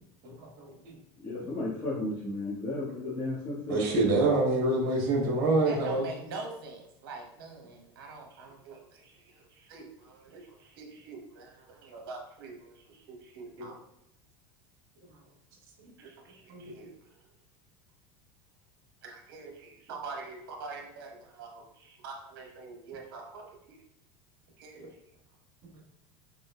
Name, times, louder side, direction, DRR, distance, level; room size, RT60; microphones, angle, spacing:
voice 1, 0.2-1.0 3.7-6.0 13.6-13.7 16.5-16.7, right 2 dB, 65° right, -3 dB, 1.3 m, -26 dB
voice 2, 1.2-4.0, left 2 dB, 35° left, -9 dB, 1.4 m, -34 dB
voice 3, 5.6-13.8 16.0-17.3 19.0-23.8 24.6-24.8, right 4 dB, 80° right, 2 dB, 1.0 m, -45 dB
4.0 x 3.7 x 2.2 m, 0.81 s
supercardioid pair, 120°, 12 cm